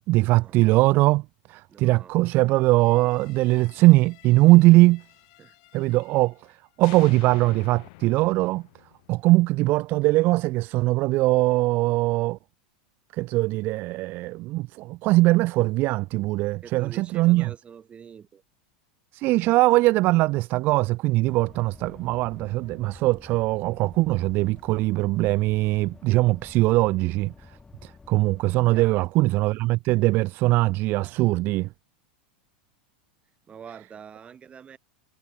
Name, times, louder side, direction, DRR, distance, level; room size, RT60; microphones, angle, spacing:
voice 1, 0.1-1.2 1.5-5.0 5.7-6.3 6.8-8.6 9.1-12.4 13.1-17.5 19.1-27.3 27.8-31.7, right 20 dB, 45° right, 0.6 m, -21 dB
voice 2, 1.7-2.1 5.4-5.6 16.6-18.4 28.7-29.0 33.5-34.8, right 7 dB, 25° right, 4.0 m, -45 dB
sound 1, 2.7-6.5 6.8-9.8, left 26 dB, 60° left, 2.5 m, -49 dB
sound 2, 21.3-28.9, left 4 dB, 15° left, 3.9 m, -49 dB
hypercardioid pair, 105°, 5 cm